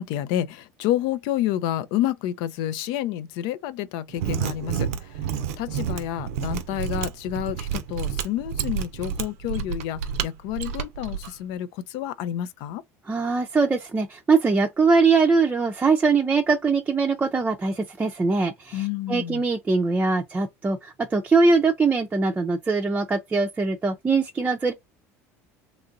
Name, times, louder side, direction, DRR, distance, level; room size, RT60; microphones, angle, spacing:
voice 1, 0.0-4.9 5.6-12.8 18.7-19.4, left 12 dB, 70° left, 0.4 m, -29 dB
Mechanisms, 4.1-11.3, right 8 dB, 85° right, 0.5 m, -29 dB
voice 2, 13.1-24.7, right 4 dB, 20° right, 0.5 m, -22 dB
3.0 x 2.5 x 2.4 m
supercardioid pair, 90°, 8 cm